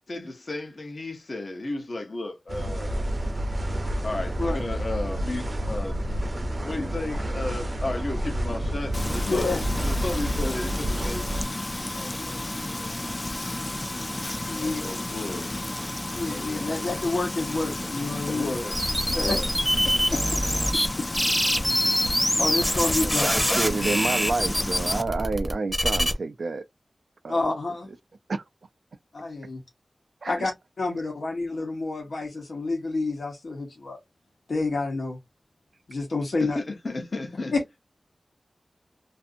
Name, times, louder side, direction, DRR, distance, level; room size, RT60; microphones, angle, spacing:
voice 1, 0.1-3.1 4.0-6.0 6.6-9.5 9.8-12.4 12.7-13.2 14.5-15.5 18.3-18.8 19.2-19.5 36.4-37.5, left 2 dB, 55° left, 0.7 m, -34 dB
sound 1, 2.5-11.4, equal, 40° right, 0.6 m, -29 dB
Frying (food), 8.9-25.0, left 1 dB, 25° left, 0.3 m, -32 dB
voice 2, 9.2-9.6 14.5-14.8 16.2-18.6 19.1-19.4 20.1-20.2 21.0-21.1 22.0-23.3 27.3-27.9 29.1-29.6 30.3-34.0 34.5-35.2 35.9-36.6 37.5-37.6, left 3 dB, 85° left, 1.0 m, -29 dB
sound 2, 18.7-20.9 21.1-26.1, equal, 5° left, 0.7 m, -24 dB
voice 3, 23.0-26.6 27.2-27.4 28.3-28.4 30.2-30.3 30.9-31.0, right 3 dB, 85° right, 0.3 m, -29 dB
2.5 x 2.5 x 2.4 m
wide cardioid pair, 95°, 0 cm